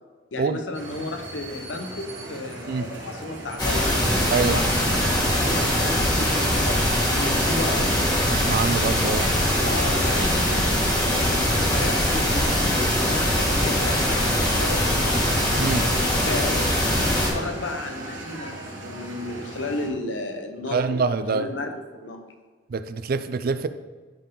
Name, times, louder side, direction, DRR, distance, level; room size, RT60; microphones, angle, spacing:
voice 1, 0.3-4.0 4.5-8.0 9.5-15.3 15.6-16.7 17.0-22.2, left 2 dB, 80° left, 5 dB, 1.0 m, -33 dB
sound 1, 0.7-19.9, right 1 dB, 85° right, 1.6 m, -38 dB
sound 2, 3.6-17.3, equal, 25° left, 1.9 m, -22 dB
voice 2, 4.3-4.6 8.3-9.3 15.6-15.8 20.7-21.5 22.7-23.7, right 4 dB, 55° right, 12 dB, 0.4 m, -25 dB
10.5 x 4.5 x 3.8 m, 1.4 s
head